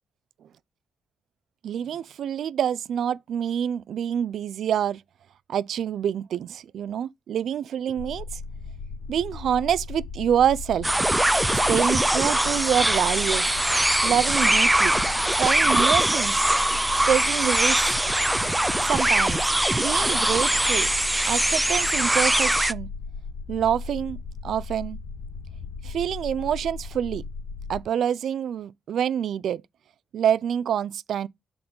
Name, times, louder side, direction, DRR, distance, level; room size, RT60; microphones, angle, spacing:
voice 1, 1.6-5.0 5.5-8.3 9.1-10.9 11.5-13.5 14.0-14.9 15.4-16.4 17.1-17.9 18.8-19.4 19.8-20.9 21.3-22.9 23.5-25.0 25.8-27.2 27.7-29.6 30.1-31.3, right 9 dB, 75° right, 0.4 m, -26 dB
sound 1, 8.0-27.8, left 4 dB, 85° left, 0.9 m, -37 dB
sound 2, 10.8-22.7, right 1 dB, 10° right, 0.4 m, -22 dB
6.9 x 4.0 x 5.2 m
cardioid pair, 75°, 0 cm